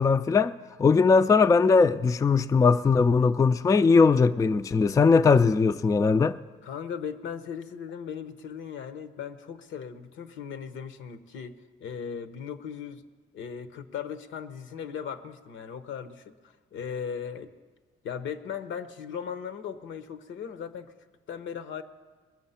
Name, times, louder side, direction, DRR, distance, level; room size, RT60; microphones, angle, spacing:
voice 1, 0.0-6.4, left 4 dB, 15° left, 0.3 m, -20 dB
voice 2, 6.6-13.0 13.3-17.5 18.0-20.9 21.3-21.8, left 7 dB, 75° left, 0.9 m, -38 dB
21.0 x 7.3 x 5.6 m
cardioid pair, 90°, 20 cm